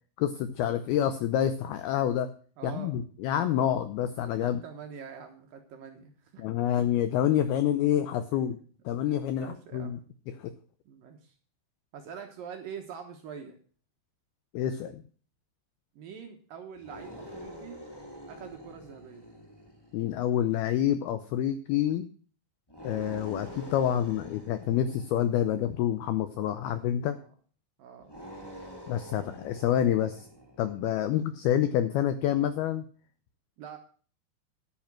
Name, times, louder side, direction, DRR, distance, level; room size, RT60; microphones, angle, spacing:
voice 1, 0.2-2.3 2.6-4.6 6.4-8.6 8.9-10.0 10.4-10.5 14.5-15.0 19.9-22.1 22.8-27.2 28.9-30.3 30.6-32.9, left 10 dB, 80° left, 11 dB, 2.2 m, -27 dB
voice 2, 2.6-2.9 4.4-6.5 8.3-8.4 9.4-10.0 10.9-11.4 11.9-13.6 16.0-17.8 18.3-19.3 27.1-27.3 27.8-28.2 33.6-33.8, right 7 dB, 65° right, 4 dB, 2.3 m, -44 dB
sound 1, 16.7-20.3 22.7-25.8 28.0-30.7, equal, 15° left, 0.8 m, -46 dB
11.0 x 8.9 x 6.1 m, 0.42 s
omnidirectional pair, 5.4 m